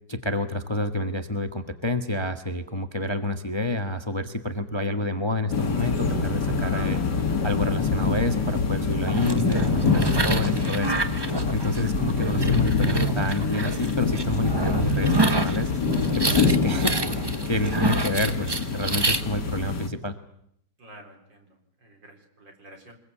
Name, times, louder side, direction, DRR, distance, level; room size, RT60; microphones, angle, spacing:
voice 1, 0.1-11.0 11.5-15.7 16.1-20.1, left 1 dB, 15° left, 8 dB, 1.3 m, -29 dB
sound 1, 5.5-19.9, left 4 dB, 60° left, 2.8 m, -25 dB
sound 2, 9.1-19.2, right 2 dB, 15° right, 1.0 m, -29 dB
voice 2, 20.8-23.0, right 1 dB, 70° right, 4 dB, 4.8 m, -50 dB
24.5 x 21.5 x 8.5 m, 0.71 s
omnidirectional pair, 2.1 m